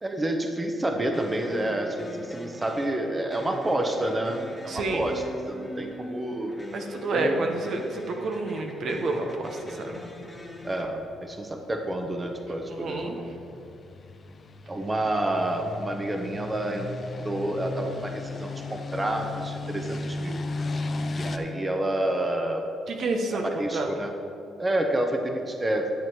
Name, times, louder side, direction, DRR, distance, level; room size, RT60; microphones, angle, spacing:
voice 1, 0.0-6.5 7.1-7.3 10.6-13.4 14.7-16.9 17.2-20.4 21.2-22.7 23.3-24.1 24.6-25.9, right 1 dB, 20° right, 4 dB, 0.9 m, -29 dB
sound 1, 1.0-10.9, left 1 dB, 10° left, 1.4 m, -41 dB
voice 2, 4.7-5.1 6.7-10.0 12.7-13.2 22.9-23.9, right 2 dB, 60° right, 3 dB, 1.1 m, -29 dB
sound 2, 8.4-21.4, left 2 dB, 40° left, 0.7 m, -37 dB
11.0 x 7.3 x 4.7 m, 2.7 s
cardioid pair, 90°, 0 cm